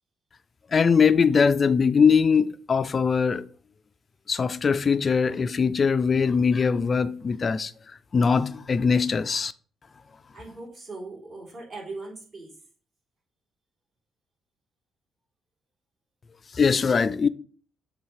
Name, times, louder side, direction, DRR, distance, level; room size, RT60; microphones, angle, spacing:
voice 1, 0.7-3.5 4.3-7.7 8.1-9.5 16.5-17.3, left 5 dB, 40° left, 0.4 m, -21 dB
voice 2, 10.3-12.5, right 3 dB, 50° right, 3.4 m, -39 dB
7.0 x 3.4 x 4.8 m
cardioid pair, 90°, 0 cm